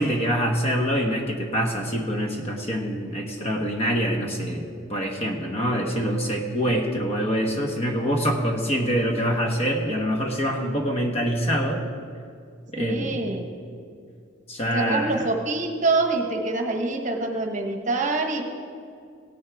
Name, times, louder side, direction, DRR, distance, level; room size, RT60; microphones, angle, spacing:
voice 1, 0.0-11.8 12.7-13.2 14.5-15.2, equal, 30° left, 2 dB, 1.2 m, -25 dB
voice 2, 5.7-6.0 12.8-13.5 14.7-18.4, right 3 dB, 40° right, 3 dB, 1.1 m, -26 dB
17.0 x 9.5 x 3.5 m, 2.3 s
head